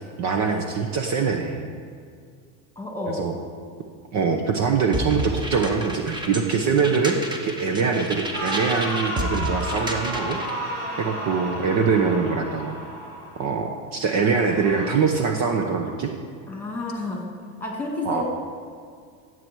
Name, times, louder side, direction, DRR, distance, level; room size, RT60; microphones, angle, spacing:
voice 1, 0.2-1.6 3.2-3.3 4.1-10.4 11.0-12.7 13.4-16.1 18.0-18.2, right 5 dB, 40° right, 3 dB, 1.0 m, -23 dB
voice 2, 2.8-3.3 16.5-17.3 17.6-18.2, left 2 dB, 5° left, -1 dB, 2.5 m, -30 dB
sound 1, 4.9-10.6, equal, 10° right, 1.1 m, -31 dB
sound 2, 8.3-13.5 14.3-14.9, right 1 dB, 80° right, 2.8 m, -32 dB
15.5 x 7.9 x 4.7 m, 2.2 s
supercardioid pair, 130°, 41 cm